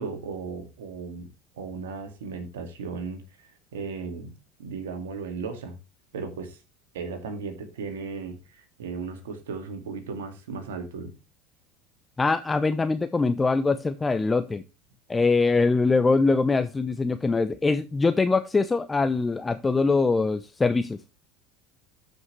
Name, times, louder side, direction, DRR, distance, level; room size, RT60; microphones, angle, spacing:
voice 1, 0.0-5.8 6.1-6.6 6.9-11.1, right 5 dB, 80° right, 2.0 m, -36 dB
voice 2, 12.2-14.6 15.1-21.0, left 3 dB, 20° left, 0.6 m, -23 dB
13.5 x 5.4 x 3.1 m
hypercardioid pair, 75°, 0 cm